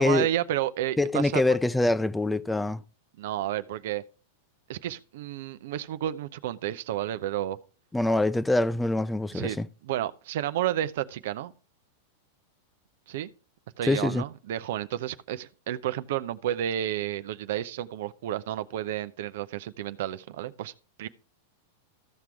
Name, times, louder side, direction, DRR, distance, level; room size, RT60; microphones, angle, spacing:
voice 1, 0.0-1.6 3.2-4.0 4.7-7.6 9.3-11.5 13.1-13.3 13.8-20.7 21.0-21.1, right 12 dB, 65° right, 0.7 m, -31 dB
voice 2, 1.0-2.8 7.9-9.7 13.9-14.2, left 2 dB, 5° left, 0.5 m, -24 dB
14.5 x 6.0 x 3.5 m
hypercardioid pair, 105°, 0 cm